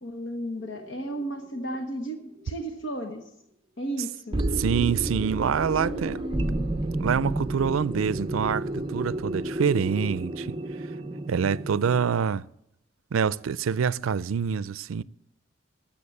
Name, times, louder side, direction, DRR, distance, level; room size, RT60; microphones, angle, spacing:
voice 1, 0.0-3.3 3.8-4.4 5.8-6.7, right 1 dB, 60° left, 1.2 m, -34 dB
sound 1, 0.6-1.2 1.7-1.8 4.3-12.1, right 1 dB, 25° right, 0.6 m, -31 dB
voice 2, 4.6-6.2 7.0-10.9 11.3-12.5 13.1-15.0, right 7 dB, 85° right, 0.4 m, -26 dB
13.5 x 7.3 x 8.6 m
head